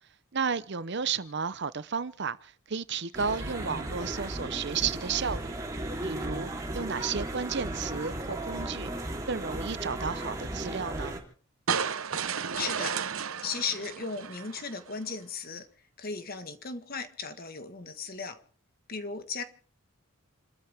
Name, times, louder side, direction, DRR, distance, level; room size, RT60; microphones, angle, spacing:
voice 1, 0.3-5.6 6.0-8.9 9.3-11.2, right 6 dB, 55° right, 0.8 m, -33 dB
sound 1, 3.1-11.2, right 1 dB, 15° right, 3.4 m, -35 dB
sound 2, 11.7-14.9, right 6 dB, 75° right, 1.0 m, -33 dB
voice 2, 12.5-13.0 13.4-15.7 16.0-18.4 18.9-19.4, left 5 dB, 45° left, 1.6 m, -36 dB
29.5 x 13.5 x 3.5 m
head